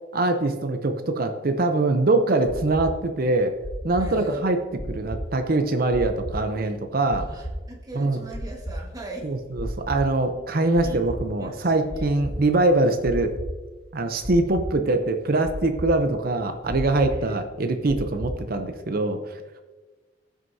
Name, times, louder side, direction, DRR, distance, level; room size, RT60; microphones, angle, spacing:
voice 1, 0.1-3.5 3.8-4.6 4.9-7.3 8.0-8.2 9.2-13.3 13.9-19.4, right 2 dB, 50° right, 6 dB, 0.7 m, -23 dB
sound 1, 2.5-18.6, equal, 35° left, 1.6 m, -35 dB
voice 2, 4.0-4.5 7.3-9.3 10.6-11.0 11.4-12.0 17.1-17.3, right 2 dB, 20° right, -1 dB, 1.5 m, -39 dB
15.5 x 6.4 x 2.7 m, 1.3 s
head